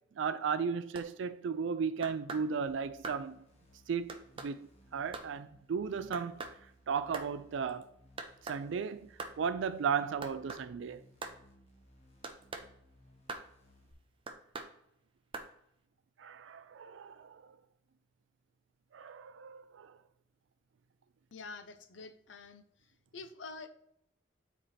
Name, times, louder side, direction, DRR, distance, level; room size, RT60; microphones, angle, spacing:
voice 1, 0.2-3.4 3.9-4.7 4.9-6.4 6.9-7.9 8.5-11.0 16.2-17.4 18.9-20.0, right 6 dB, 65° right, 0.4 m, -35 dB
sound 1, 0.9-1.1 2.0-2.5 3.0-3.2 4.1-4.5 5.1-5.3 6.1-6.6 7.1-7.3 8.2-8.6 9.2-9.4 10.2-10.7 11.2-11.4 12.2-12.7 13.3-13.5 14.3-14.7 15.3-15.5, right 3 dB, 25° right, 0.6 m, -42 dB
sound 2, 2.7-13.9, equal, 35° left, 1.3 m, -63 dB
voice 2, 21.3-22.6 23.1-23.7, left 4 dB, 65° left, 0.6 m, -47 dB
9.7 x 4.5 x 3.3 m
head